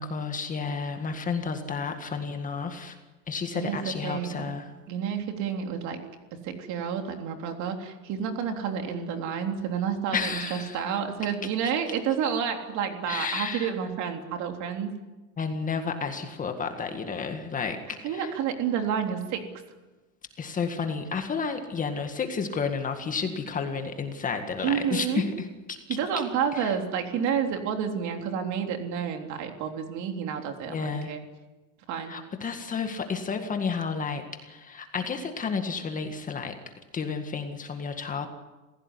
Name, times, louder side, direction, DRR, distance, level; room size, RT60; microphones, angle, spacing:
voice 1, 0.0-3.0 3.3-4.7 10.1-10.8 13.1-13.7 15.4-18.3 20.4-25.8 26.5-26.6 30.7-31.1 32.1-36.6 36.9-38.3, left 5 dB, 20° left, 6 dB, 1.8 m, -31 dB
voice 2, 3.5-4.5 4.9-6.0 6.4-15.0 18.0-19.4 24.6-25.2 25.9-31.2 31.9-32.1, right 7 dB, 45° right, 5 dB, 3.5 m, -30 dB
27.5 x 16.5 x 9.8 m, 1.2 s
supercardioid pair, 155°, 39 cm